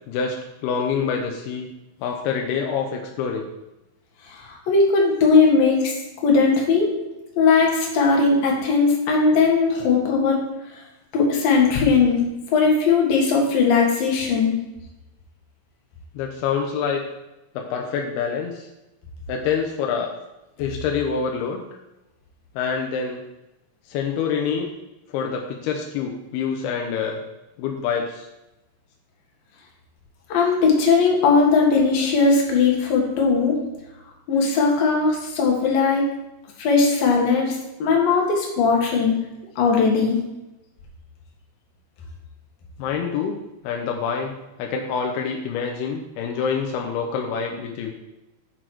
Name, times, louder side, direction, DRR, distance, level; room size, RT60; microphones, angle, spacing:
voice 1, 0.1-1.7 2.0-3.5 16.1-17.0 17.6-18.7 19.3-20.1 20.6-21.6 22.6-23.2 23.9-24.7 25.1-27.2 27.6-28.3 42.8-47.9, left 6 dB, 80° left, 2 dB, 2.3 m, -26 dB
voice 2, 4.4-5.9 6.2-6.9 7.4-10.4 11.1-12.2 12.5-14.6 30.3-33.6 34.3-36.0 36.6-39.1 39.6-40.2, left 4 dB, 60° left, -1 dB, 2.9 m, -18 dB
7.9 x 6.1 x 4.6 m, 0.98 s
omnidirectional pair, 5.4 m